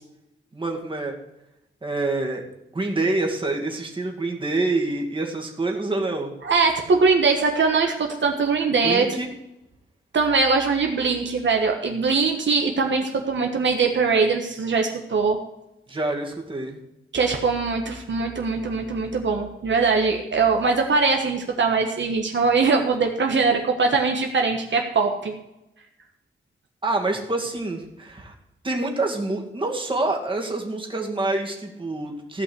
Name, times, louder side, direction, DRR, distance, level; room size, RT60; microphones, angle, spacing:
voice 1, 0.5-1.1 1.8-2.4 2.7-6.3 8.8-9.3 15.9-16.8 26.8-28.3 28.6-32.4, right 2 dB, 25° right, 1 dB, 2.2 m, -26 dB
voice 2, 6.4-9.1 10.1-15.4 17.1-25.3, right 4 dB, 60° right, 3 dB, 1.4 m, -21 dB
15.5 x 5.7 x 7.8 m, 0.89 s
wide cardioid pair, 125°, 21 cm